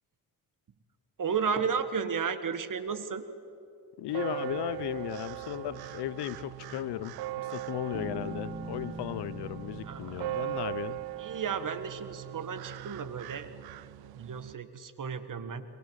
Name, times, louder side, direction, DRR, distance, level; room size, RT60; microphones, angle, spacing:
voice 1, 1.2-3.2 9.8-10.3 11.2-13.5 14.2-15.7, right 6 dB, 50° right, 12 dB, 1.8 m, -33 dB
voice 2, 4.0-11.0, left 13 dB, 70° left, 17 dB, 0.9 m, -36 dB
sound 1, 4.1-14.5, right 15 dB, 65° right, 0.6 m, -40 dB
Bass guitar, 7.9-11.6, right 2 dB, 25° right, 2.7 m, -43 dB
23.5 x 23.0 x 8.1 m, 2.7 s
supercardioid pair, 55°, 41 cm